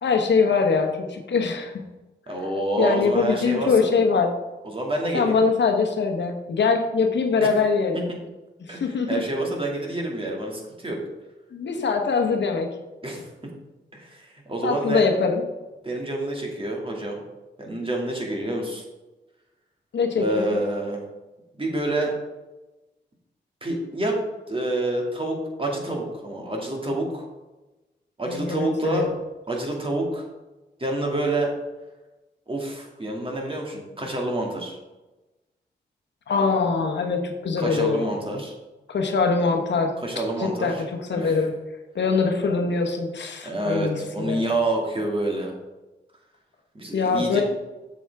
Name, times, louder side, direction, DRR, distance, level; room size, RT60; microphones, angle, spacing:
voice 1, 0.0-1.7 2.3-2.4 2.8-4.3 5.1-8.1 8.6-9.2 11.5-12.7 14.6-15.4 19.9-20.6 28.2-29.0 36.3-38.4 38.9-40.0 40.4-41.6 41.9-44.4 46.9-47.4, left 4 dB, 75° left, 4 dB, 1.0 m, -23 dB
voice 2, 2.3-3.9 4.6-5.4 7.4-7.5 8.7-11.0 13.0-13.5 13.9-15.0 15.8-17.2 17.6-18.8 20.2-21.0 21.6-22.1 23.6-24.2 24.5-27.2 28.2-29.1 29.5-30.3 30.8-31.5 32.5-34.8 37.6-38.5 40.0-40.8 41.1-41.4 43.4-45.5 46.7-47.4, right 1 dB, 30° right, 0 dB, 2.2 m, -27 dB
7.3 x 7.1 x 3.5 m, 1.1 s
cardioid pair, 60°, 19 cm